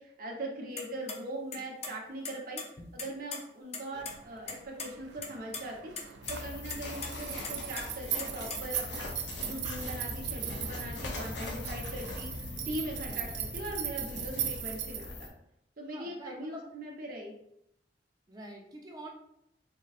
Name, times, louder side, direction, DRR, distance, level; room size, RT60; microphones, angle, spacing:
voice 1, 0.0-15.3 15.8-17.3, right 1 dB, 55° right, -1 dB, 0.9 m, -41 dB
sound 1, 0.8-1.2 1.5-1.9 2.3-3.4 3.7-4.1 4.5-4.9 5.2-5.6 6.0-6.4 6.7-7.1 7.4-8.8, left 4 dB, 40° left, 0.6 m, -39 dB
sound 2, 3.9-15.1, right 11 dB, 80° right, 0.4 m, -39 dB
sound 3, 6.2-15.3, left 2 dB, 85° left, 0.8 m, -40 dB
voice 2, 15.9-16.7 18.3-19.1, right 1 dB, 20° right, 0 dB, 0.7 m, -46 dB
4.5 x 3.0 x 2.4 m, 0.77 s
head